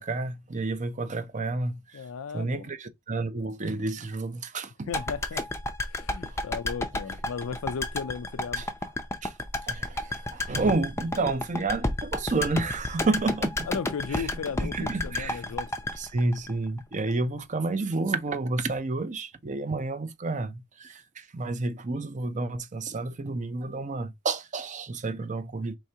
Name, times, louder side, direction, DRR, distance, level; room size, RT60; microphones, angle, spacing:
voice 1, 0.0-2.0 2.3-4.9 6.3-6.4 8.6-8.7 9.2-9.3 9.6-13.7 14.1-14.3 14.6-15.4 16.0-25.7, right 3 dB, 35° right, 0.5 m, -30 dB
voice 2, 1.9-2.7 4.9-5.4 5.9-8.6 13.7-15.7, left 6 dB, 65° left, 0.4 m, -35 dB
sound 1, 4.9-17.1 17.4-17.5, left 2 dB, 10° left, 0.5 m, -31 dB
4.7 x 3.3 x 2.8 m
head